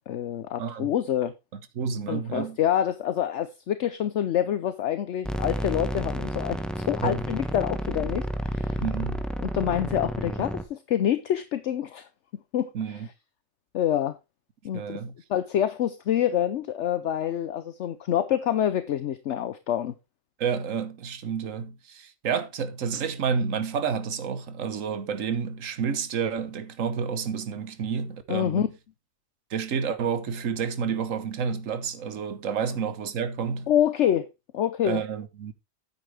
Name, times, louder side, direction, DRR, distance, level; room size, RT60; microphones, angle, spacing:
voice 1, 0.0-1.3 2.1-8.8 9.4-12.1 12.5-12.7 13.7-14.2 14.6-15.0 15.3-19.9 28.3-28.7 33.7-34.3 34.5-35.0, left 10 dB, 65° left, 1.0 m, -26 dB
voice 2, 0.6-0.9 1.7-2.6 7.0-7.2 8.8-9.2 12.7-13.1 14.7-15.1 20.4-28.7 29.5-33.7 34.8-35.5, right 6 dB, 75° right, 1.4 m, -30 dB
sound 1, 5.2-10.6, equal, ahead, 1.0 m, -31 dB
9.4 x 8.9 x 3.4 m
omnidirectional pair, 1.4 m